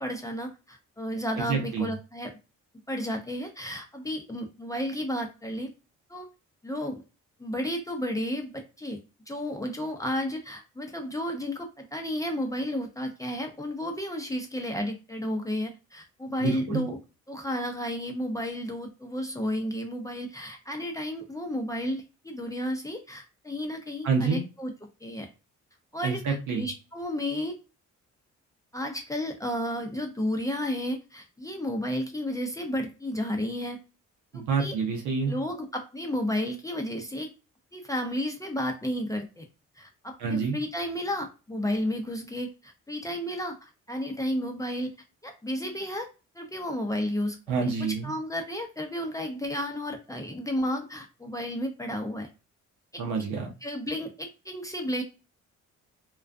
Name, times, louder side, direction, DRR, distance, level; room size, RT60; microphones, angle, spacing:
voice 1, 0.0-2.3 2.9-5.7 6.1-6.3 6.6-7.0 7.4-9.0 9.3-17.0 17.3-24.7 25.0-25.3 25.9-27.5 28.7-33.8 34.3-34.7 35.3-37.3 37.7-39.4 39.8-44.9 45.2-46.1 46.3-52.3 52.9-53.0 53.6-55.0, equal, 10° left, 3 dB, 0.5 m, -32 dB
voice 2, 1.4-1.9 16.4-16.9 24.0-24.4 26.0-26.6 34.3-35.4 40.2-40.6 47.5-48.1 53.0-53.5, right 5 dB, 85° right, 2 dB, 0.7 m, -28 dB
2.3 x 2.2 x 2.5 m, 0.30 s
cardioid pair, 90°, 30 cm